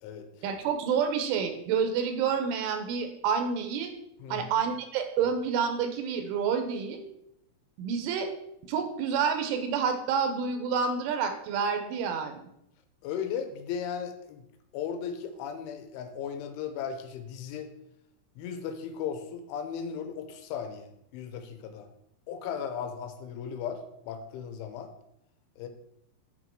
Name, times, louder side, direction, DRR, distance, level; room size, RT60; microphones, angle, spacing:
voice 1, 0.4-3.9 4.3-7.0 7.8-8.3 8.6-12.4, right 6 dB, 85° right, 7 dB, 3.5 m, -28 dB
voice 2, 13.0-14.4 14.7-17.7 18.4-21.9 22.3-23.8 24.1-24.9 25.6-25.7, left 7 dB, 90° left, 8 dB, 3.3 m, -36 dB
8.5 x 6.3 x 4.6 m, 0.78 s
omnidirectional pair, 5.5 m